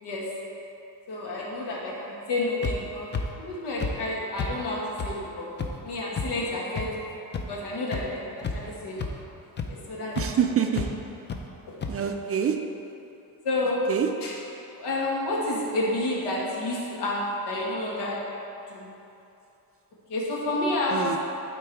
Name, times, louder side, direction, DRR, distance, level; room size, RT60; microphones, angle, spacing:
voice 1, 1.1-3.1 3.4-5.5 5.8-6.9 7.5-9.1 9.7-10.2 10.7-10.8 11.7-11.8 12.2-12.4 13.4-13.9 14.2-14.3 14.7-18.2 18.7-18.9 20.1-21.2, left 2 dB, 85° left, -4 dB, 1.9 m, -30 dB
sound 1, 2.6-2.7 3.1-3.2 3.8-3.9 4.4-4.5 5.0-5.1 5.6-5.7 6.2-6.3 6.8-6.9 7.3-7.4 7.9-8.0 8.4-8.7 9.0-9.1 9.6-9.7 10.2-10.3 10.7-10.9 11.3-11.4 11.8-11.9, left 5 dB, 30° left, 0.5 m, -29 dB
voice 2, 10.2-11.0 11.9-12.7 13.9-14.2 20.9-21.2, right 8 dB, 35° right, 4 dB, 0.4 m, -26 dB
12.0 x 4.0 x 4.6 m, 2.8 s
cardioid pair, 170°, 40 cm